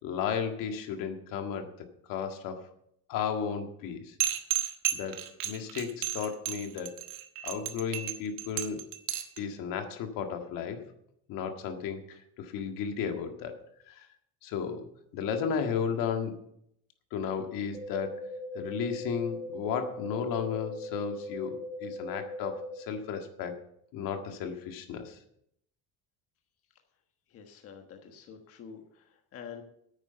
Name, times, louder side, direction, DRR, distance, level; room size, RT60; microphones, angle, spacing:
voice 1, 0.0-1.7 2.1-2.6 3.1-4.2 4.9-6.9 7.4-8.8 9.4-10.8 11.3-13.5 13.9-14.1 14.4-14.9 15.1-16.4 17.1-18.3 18.5-23.6 23.9-25.2, left 7 dB, 75° left, 5 dB, 1.8 m, -34 dB
sound 1, 4.2-9.4, right 12 dB, 75° right, 1.5 m, -32 dB
sound 2, 17.7-22.7, left 1 dB, 20° right, 5.1 m, -39 dB
voice 2, 27.3-29.6, left 7 dB, 45° left, 4 dB, 1.4 m, -47 dB
10.0 x 9.2 x 6.8 m, 0.72 s
cardioid pair, 180°, 34 cm